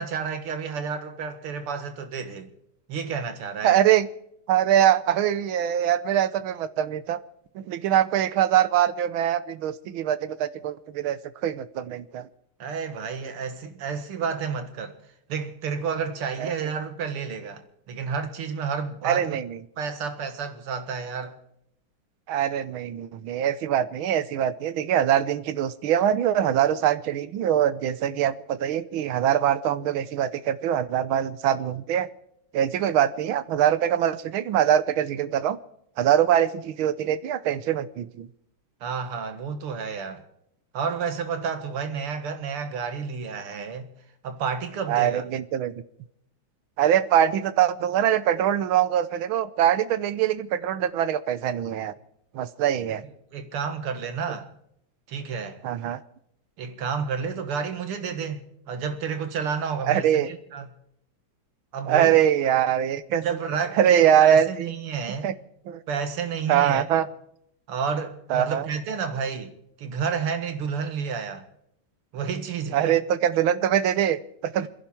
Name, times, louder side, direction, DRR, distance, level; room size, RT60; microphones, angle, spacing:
voice 1, 0.0-2.5 2.9-3.8 12.6-15.0 15.3-19.4 19.8-21.4 38.8-40.2 40.7-43.9 44.2-45.2 53.3-54.5 55.1-55.6 56.6-60.7 61.7-62.2 63.1-65.3 65.9-66.8 67.7-71.5 72.1-73.0 74.6-74.7, right 6 dB, 90° right, 2.5 m, -31 dB
voice 2, 3.6-4.1 4.5-7.2 7.5-12.3 16.4-16.7 19.0-19.6 22.3-32.1 32.5-35.6 36.0-38.3 44.9-45.7 46.8-51.9 52.3-53.0 55.6-56.0 59.8-60.3 61.9-63.2 63.8-64.7 65.2-65.3 65.7-65.8 66.5-67.1 68.3-68.7 72.7-74.7, right 10 dB, 75° right, 1.6 m, -23 dB
28.5 x 11.0 x 4.4 m
omnidirectional pair, 2.4 m